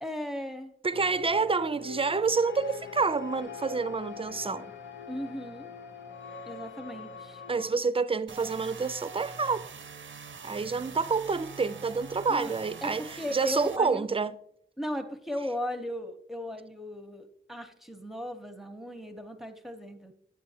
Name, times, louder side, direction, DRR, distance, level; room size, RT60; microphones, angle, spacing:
voice 1, 0.0-0.7 5.1-5.7 6.5-7.4 12.3-12.5 12.8-14.1 14.8-20.1, left 1 dB, ahead, 0.7 m, -36 dB
voice 2, 0.8-4.7 7.5-9.7 10.4-14.3, right 4 dB, 30° right, 0.3 m, -28 dB
sound 1, 0.9-7.8, left 6 dB, 90° left, 0.6 m, -43 dB
sound 2, 8.3-13.8, right 5 dB, 85° right, 0.5 m, -44 dB
8.5 x 7.5 x 2.7 m
wide cardioid pair, 65°, 20 cm